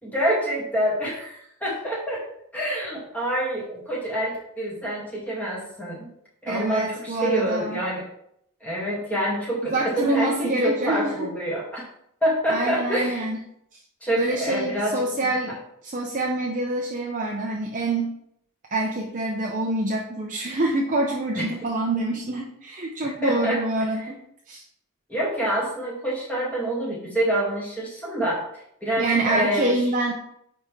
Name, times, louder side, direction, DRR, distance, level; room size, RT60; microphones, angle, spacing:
voice 1, 0.0-2.2 2.5-6.1 6.4-8.0 8.6-11.8 12.2-13.3 14.0-15.4 21.4-21.5 23.0-23.6 25.1-29.8, right 1 dB, 5° left, -5 dB, 1.8 m, -27 dB
voice 2, 6.5-7.8 9.7-11.3 12.5-13.4 14.2-18.2 18.7-24.2 24.5-24.6 29.0-30.1, right 2 dB, 35° right, -1 dB, 0.6 m, -26 dB
9.3 x 3.6 x 3.2 m, 0.73 s
head